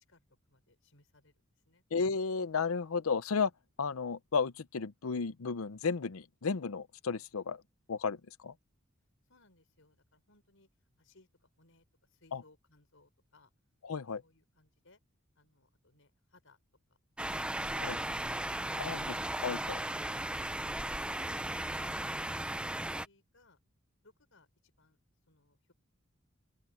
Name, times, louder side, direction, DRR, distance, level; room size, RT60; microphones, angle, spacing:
voice 1, 0.1-1.8 9.3-10.7 11.0-13.5 14.2-15.0 15.3-16.6 16.9-17.0 21.3-21.5 22.9-23.6 24.0-25.0 25.3-25.7, left 2 dB, 65° left, 5.6 m, -66 dB
voice 2, 1.9-3.5 3.8-7.6 7.9-8.2 8.4-8.5 12.3-12.4 13.8-14.2 17.8-18.0 18.8-19.2 19.4-19.8, left 5 dB, 85° left, 0.7 m, -33 dB
sound 1, 17.2-23.1, right 1 dB, 5° right, 0.6 m, -36 dB
open air
head